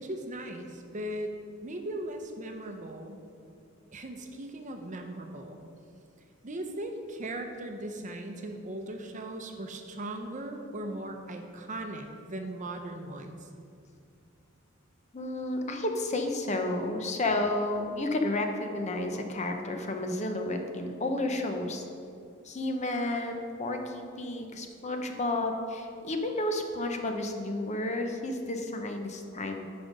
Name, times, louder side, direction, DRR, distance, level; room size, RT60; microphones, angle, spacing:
voice 1, 0.0-3.2 3.9-5.6 6.4-13.5, right 1 dB, 40° right, 5 dB, 0.7 m, -38 dB
voice 2, 15.1-21.9 22.4-29.7, left 2 dB, 35° left, 4 dB, 0.7 m, -31 dB
9.5 x 5.3 x 5.3 m, 2.4 s
head